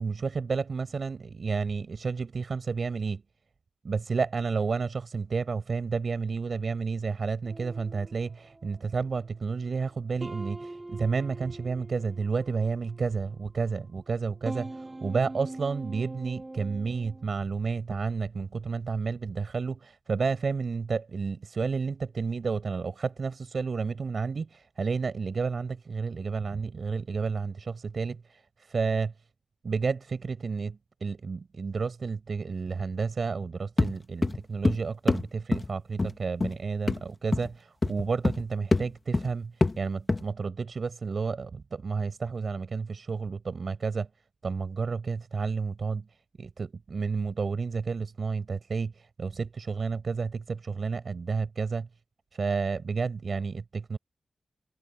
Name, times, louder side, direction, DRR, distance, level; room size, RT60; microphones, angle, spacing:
voice 1, 0.0-3.2 3.8-28.2 28.7-29.1 29.6-44.1 44.4-46.0 46.4-51.9 52.3-54.0, right 5 dB, 60° right, 5.2 m, -31 dB
sound 1, 7.4-9.3 9.8-9.9 10.2-13.5 14.1-17.3, right 2 dB, 25° right, 7.3 m, -43 dB
sound 2, 33.8-34.0 34.2-34.8 35.1-35.3 35.5-35.7 36.0-36.1 36.4-36.5 36.9-37.0 37.3-37.5 37.8-38.5 38.7-38.9 39.1-39.3 39.6-39.8 40.1-40.2, left 3 dB, 35° left, 1.4 m, -25 dB
cardioid pair, 80°, 0 cm